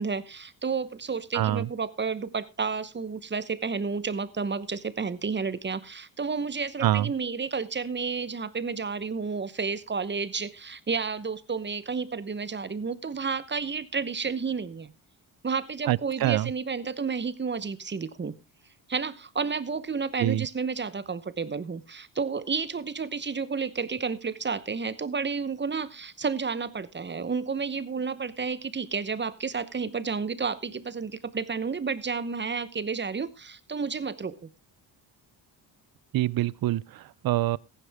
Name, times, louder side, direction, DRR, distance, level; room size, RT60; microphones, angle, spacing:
voice 1, 0.0-14.9 15.4-18.3 18.9-34.4, right 5 dB, 25° right, 0.9 m, -31 dB
voice 2, 1.3-1.7 6.8-7.1 15.9-16.5 20.2-20.5 36.1-37.6, right 14 dB, 55° right, 0.5 m, -25 dB
15.0 x 10.5 x 3.5 m
cardioid pair, 95°, 45 cm